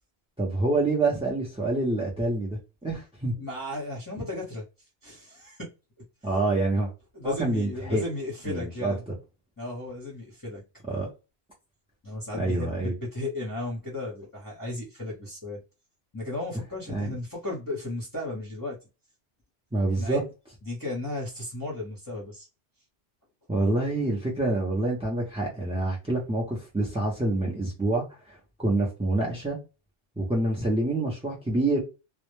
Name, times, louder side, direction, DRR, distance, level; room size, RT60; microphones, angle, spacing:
voice 1, 0.4-3.3 6.2-6.9 7.2-8.0 8.5-8.9 10.9-11.1 12.4-12.9 16.9-17.1 19.7-20.2 23.5-29.6 30.2-31.8, right 2 dB, 10° right, 0.4 m, -27 dB
voice 2, 3.4-4.7 5.0-5.7 7.1-9.0 9.6-10.6 12.0-15.6 16.1-18.8 19.9-20.2 20.6-22.5, left 2 dB, 25° left, 0.7 m, -35 dB
2.1 x 2.0 x 3.0 m
omnidirectional pair, 1.1 m